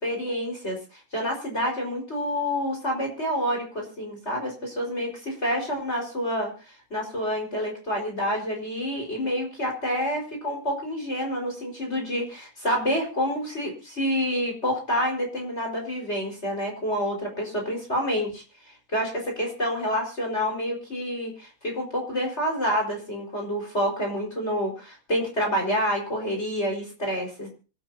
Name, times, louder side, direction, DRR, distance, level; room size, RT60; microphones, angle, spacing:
voice 1, 0.0-6.5 6.9-18.4 18.9-27.5, equal, 20° left, 1 dB, 5.2 m, -28 dB
26.0 x 12.5 x 2.8 m, 0.35 s
omnidirectional pair, 3.5 m